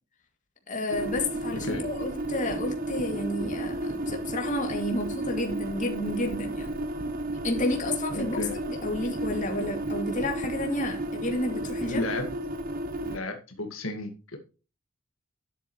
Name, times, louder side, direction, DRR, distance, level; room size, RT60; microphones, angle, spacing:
voice 1, 0.7-6.7 7.4-12.1, left 1 dB, 40° left, 2 dB, 2.6 m, -31 dB
sound 1, 0.9-13.2, right 1 dB, 45° right, 1.1 m, -33 dB
voice 2, 8.1-8.6 11.9-12.3 13.0-14.4, left 2 dB, 85° left, 5 dB, 1.8 m, -33 dB
12.0 x 8.1 x 3.1 m, 0.32 s
head